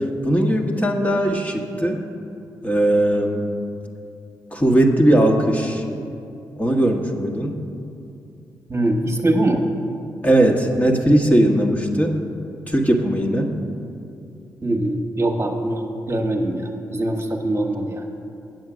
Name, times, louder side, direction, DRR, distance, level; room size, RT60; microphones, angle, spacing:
voice 1, 0.0-2.0 2.6-3.5 4.5-5.8 6.6-7.6 10.2-12.2 12.7-13.5, right 1 dB, 20° left, 1 dB, 1.2 m, -19 dB
voice 2, 8.7-9.6 14.6-18.0, right 1 dB, 30° right, 2 dB, 1.3 m, -22 dB
7.9 x 7.9 x 6.1 m, 2.7 s
supercardioid pair, 40°, 9 cm